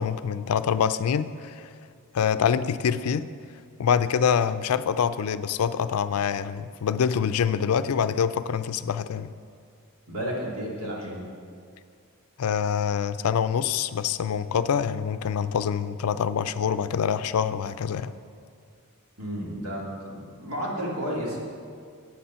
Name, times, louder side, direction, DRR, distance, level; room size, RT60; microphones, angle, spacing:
voice 1, 0.0-1.7 2.1-3.3 3.8-9.3 12.4-18.1, left 7 dB, 85° left, 13 dB, 0.4 m, -25 dB
voice 2, 10.1-11.3 19.2-21.4, equal, 80° right, -4 dB, 2.4 m, -32 dB
8.6 x 8.1 x 5.6 m, 2.2 s
head